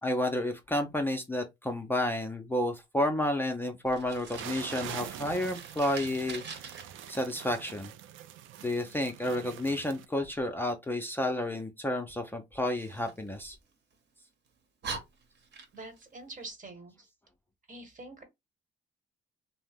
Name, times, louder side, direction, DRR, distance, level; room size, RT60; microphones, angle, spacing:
voice 1, 0.0-6.4 7.1-7.9 8.6-13.6, left 1 dB, 10° left, 0.5 m, -31 dB
Fire, 3.8-6.8 12.7-14.0 14.5-14.6 14.8-16.0, right 4 dB, 60° right, 1.0 m, -44 dB
sound 1, 4.3-10.1, right 11 dB, 80° right, 0.4 m, -44 dB
voice 2, 15.7-17.1 17.7-18.2, right 2 dB, 40° right, 1.2 m, -45 dB
2.7 x 2.0 x 3.4 m
cardioid pair, 90°, 20 cm